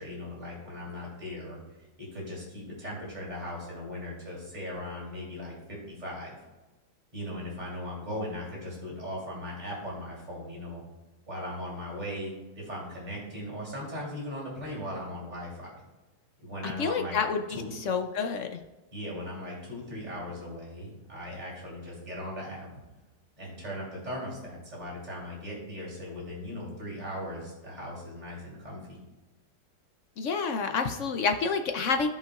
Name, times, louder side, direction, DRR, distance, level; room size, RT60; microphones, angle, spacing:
voice 1, 0.0-1.6 2.1-6.3 7.1-10.8 11.3-15.7 16.4-17.2 17.5-17.7 18.9-22.7 23.4-29.0, left 1 dB, 25° right, -4 dB, 3.0 m, -38 dB
voice 2, 16.6-18.6 30.2-32.1, left 5 dB, 70° left, 6 dB, 0.7 m, -29 dB
15.5 x 5.5 x 2.3 m, 1.2 s
omnidirectional pair, 1.9 m